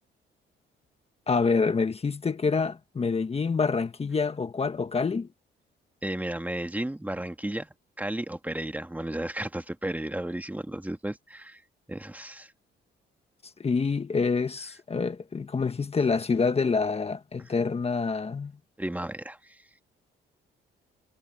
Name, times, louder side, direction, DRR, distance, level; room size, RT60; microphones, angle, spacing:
voice 1, 1.3-5.3 13.6-18.5, left 4 dB, 30° left, 1.4 m, -27 dB
voice 2, 6.0-7.7 8.0-11.6 11.9-12.5 18.8-19.6, right 1 dB, 10° right, 1.8 m, -33 dB
cardioid pair, 90°, 20 cm